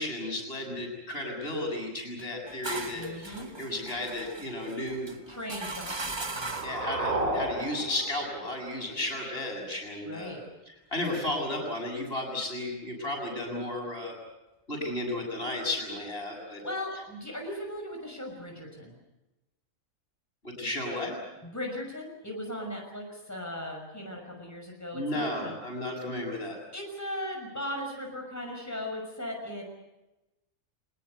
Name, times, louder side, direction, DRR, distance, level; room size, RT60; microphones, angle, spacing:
voice 1, 0.0-5.2 6.6-10.3 10.9-14.1 14.7-16.6 20.4-21.2 24.9-26.6, left 1 dB, 50° left, 1 dB, 7.5 m, -33 dB
sound 1, 2.2-6.9, right 2 dB, 20° right, 1.2 m, -39 dB
voice 2, 2.9-3.5 5.3-6.6 10.1-10.4 16.5-18.9 21.4-25.5 26.7-29.6, left 1 dB, 10° left, 1 dB, 6.0 m, -38 dB
sound 2, 5.5-9.5, right 2 dB, 90° right, 4.4 m, -34 dB
26.0 x 20.0 x 8.2 m, 0.98 s
omnidirectional pair, 1.3 m